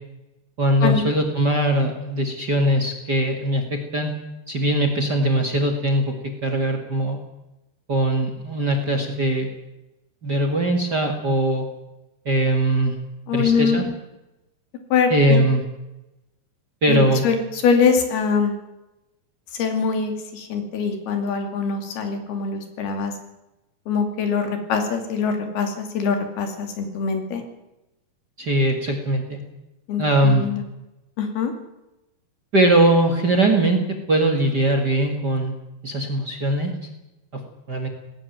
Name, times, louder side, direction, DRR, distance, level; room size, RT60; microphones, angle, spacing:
voice 1, 0.6-4.1 4.5-7.2 7.9-9.5 10.2-11.7 12.3-13.0 13.3-13.8 15.1-15.6 16.8-17.2 28.4-29.4 30.0-30.5 32.5-33.8 34.1-35.5 35.8-36.7 37.7-37.9, right 1 dB, 35° right, 5 dB, 2.1 m, -20 dB
voice 2, 13.3-13.9 14.9-15.4 16.9-18.5 19.6-23.1 23.9-27.4 29.9-30.6 31.2-31.5, left 5 dB, 75° left, 6 dB, 4.5 m, -23 dB
18.5 x 17.0 x 9.3 m, 0.95 s
omnidirectional pair, 4.6 m